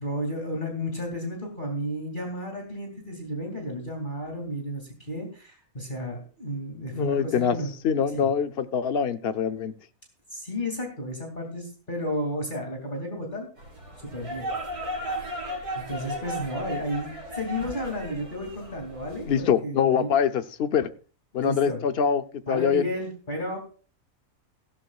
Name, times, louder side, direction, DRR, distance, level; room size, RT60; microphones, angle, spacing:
voice 1, 0.0-7.7 8.1-8.3 10.3-13.5 14.0-14.5 15.7-20.1 21.4-21.8 22.5-23.6, equal, 30° left, 1 dB, 2.7 m, -32 dB
voice 2, 6.9-7.6 7.8-9.7 19.3-20.9 21.3-22.9, left 7 dB, 50° left, 10 dB, 0.8 m, -24 dB
sound 1, 13.6-19.4, equal, 75° right, 5.1 m, -35 dB
16.0 x 12.5 x 2.4 m, 0.38 s
omnidirectional pair, 1.6 m